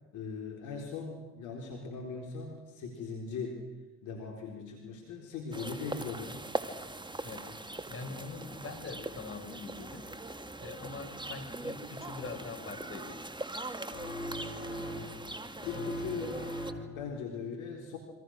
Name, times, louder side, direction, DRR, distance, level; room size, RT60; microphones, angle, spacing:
voice 1, 0.1-3.6 4.0-6.4 7.9-8.0 15.6-16.5 16.8-18.0, left 5 dB, 65° left, 1 dB, 4.2 m, -40 dB
sound 1, 5.5-16.7, right 2 dB, 15° right, 2.3 m, -41 dB
voice 2, 7.9-10.1 10.5-13.2 15.7-15.9, left 4 dB, 40° left, 5 dB, 6.0 m, -43 dB
sound 2, 13.9-15.3 15.6-17.1, equal, 90° left, 5.7 m, -40 dB
27.5 x 25.5 x 6.6 m, 1.1 s
hypercardioid pair, 50°, 32 cm